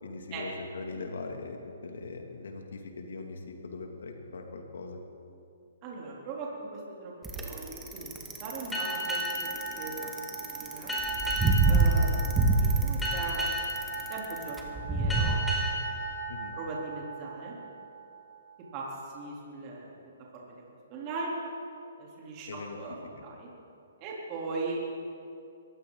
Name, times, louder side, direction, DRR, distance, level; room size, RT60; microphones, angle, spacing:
voice 1, 0.0-1.6 1.8-5.0 16.3-16.5 22.5-22.8, left 3 dB, 75° left, 3 dB, 2.5 m, -40 dB
voice 2, 5.8-8.1 8.4-11.0 11.6-13.5 13.9-15.4 15.9-16.0 16.5-17.6 18.7-20.0 20.4-20.6 20.9-21.3 22.0-23.5 24.0-25.0, right 3 dB, 35° right, -4 dB, 3.5 m, -39 dB
Bicycle, 7.2-15.3, right 3 dB, 10° right, 1.8 m, -26 dB
sound 1, 8.7-17.9, right 1 dB, 5° left, 4.6 m, -35 dB
22.5 x 15.0 x 4.0 m, 2.5 s
hypercardioid pair, 135°, 0 cm